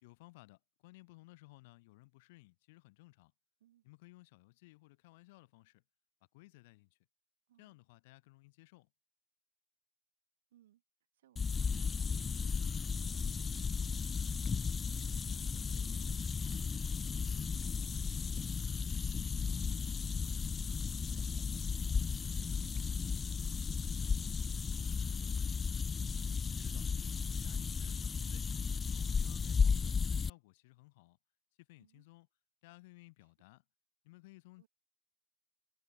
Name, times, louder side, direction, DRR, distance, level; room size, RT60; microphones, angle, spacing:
voice 1, 0.0-3.3 3.8-5.8 6.3-7.0 7.6-8.9 26.6-28.5 28.9-31.2 31.6-32.3 32.6-33.6 34.0-34.7, left 22 dB, 50° left, 3.5 m, -59 dB
voice 2, 10.5-10.8 11.1-14.5 14.8-21.5 21.8-25.6 31.8-32.1 34.6-34.7, right 12 dB, 60° right, 7.3 m, -69 dB
sound 1, 11.4-30.3, left 5 dB, 15° left, 0.4 m, -34 dB
hypercardioid pair, 105°, 0 cm